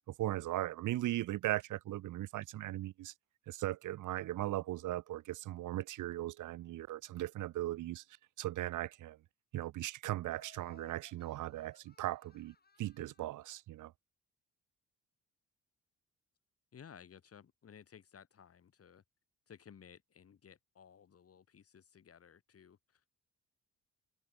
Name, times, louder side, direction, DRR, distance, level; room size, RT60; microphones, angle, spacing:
voice 1, 0.2-3.1 3.5-8.0 8.4-9.2 9.5-13.9, right 15 dB, 80° right, 1.7 m, -38 dB
Laughter, 10.3-13.5, left 4 dB, 30° left, 7.5 m, -65 dB
voice 2, 16.7-19.0 19.5-23.2, left 7 dB, 50° left, 6.0 m, -57 dB
cardioid pair, 90°, 30 cm